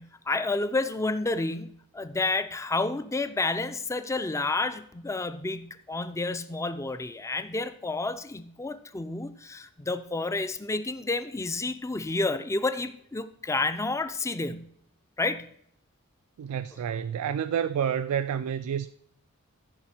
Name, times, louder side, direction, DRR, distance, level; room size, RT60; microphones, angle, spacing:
voice 1, 0.0-14.7 15.2-15.5, left 3 dB, 15° left, 0.4 m, -30 dB
voice 2, 16.4-18.9, right 8 dB, 75° right, 0.3 m, -29 dB
14.5 x 4.9 x 4.4 m
head